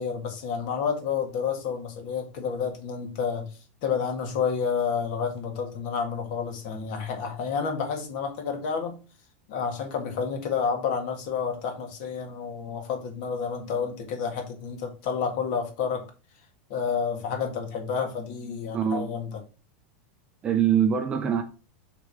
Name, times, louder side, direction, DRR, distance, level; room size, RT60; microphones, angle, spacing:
voice 1, 0.0-9.0 9.5-16.1 16.7-19.4, left 6 dB, 45° left, 1.8 m, -30 dB
voice 2, 18.7-19.1 20.4-21.4, right 8 dB, 15° right, 0.5 m, -23 dB
6.2 x 3.5 x 5.9 m
supercardioid pair, 170°, 6 cm